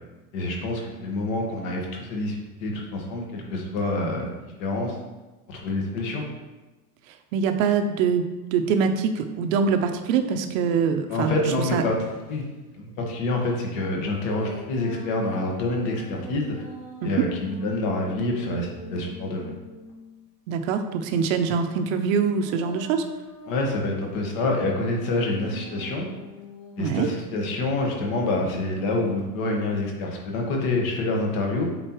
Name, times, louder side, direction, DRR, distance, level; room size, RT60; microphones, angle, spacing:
voice 1, 0.3-2.3 2.6-4.9 5.5-6.2 11.1-11.9 12.3-12.4 12.7-16.5 17.0-19.5 23.5-26.0 26.8-31.7, left 2 dB, 55° left, 0 dB, 1.5 m, -27 dB
voice 2, 7.3-11.3 11.7-11.8 17.0-17.1 20.5-23.0 26.8-27.1, right 6 dB, 55° right, 7 dB, 0.6 m, -24 dB
sound 1, 10.3-12.4 13.6-20.3 21.1-27.5 28.2-29.1, left 1 dB, 35° left, 1.3 m, -43 dB
7.9 x 4.1 x 3.0 m, 1.1 s
supercardioid pair, 170°, 48 cm